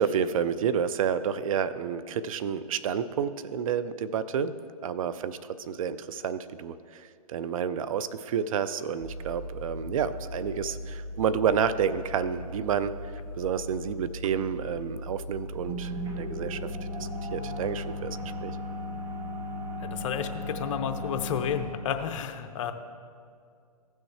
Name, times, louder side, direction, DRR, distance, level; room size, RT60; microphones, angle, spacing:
voice 1, 0.0-4.5 4.8-13.0 13.4-16.7 17.0-18.6, right 7 dB, 55° right, 13 dB, 0.5 m, -30 dB
sound 1, 9.0-21.7, left 1 dB, 20° right, 1.0 m, -37 dB
voice 2, 19.8-22.7, left 8 dB, 50° left, 8 dB, 0.8 m, -31 dB
15.5 x 6.3 x 3.3 m, 2.3 s
hypercardioid pair, 125°, 20 cm